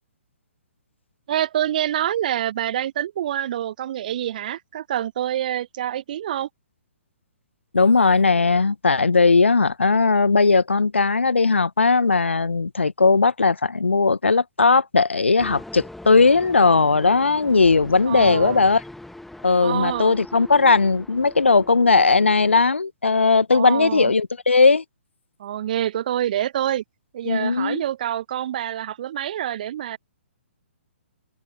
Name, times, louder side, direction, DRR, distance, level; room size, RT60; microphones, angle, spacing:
voice 1, 1.3-6.5 18.1-18.6 19.6-20.1 23.5-24.1 25.4-26.8 27.1-30.0, right 11 dB, 40° right, 1.0 m, -26 dB
voice 2, 7.7-18.8 19.4-24.8 27.3-27.8, left 4 dB, 70° left, 1.1 m, -18 dB
sound 1, 15.4-22.6, left 1 dB, ahead, 1.7 m, -41 dB
open air
figure-of-eight pair, 125°, 7 cm